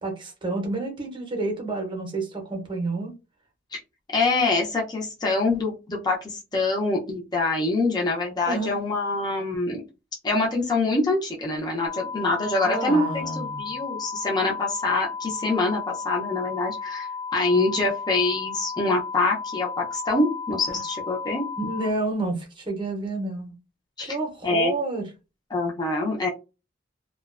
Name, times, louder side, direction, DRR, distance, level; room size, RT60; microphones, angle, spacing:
voice 1, 0.0-3.1 8.5-8.7 12.6-13.7 21.6-23.5 24.0-25.1, right 2 dB, 25° right, 0.7 m, -29 dB
voice 2, 4.1-9.8 10.2-21.4 24.0-24.2 24.4-24.7 25.5-26.3, left 2 dB, 20° left, 0.5 m, -25 dB
sound 1, 11.9-21.9, left 5 dB, 50° left, 0.8 m, -34 dB
2.4 x 2.1 x 2.4 m
head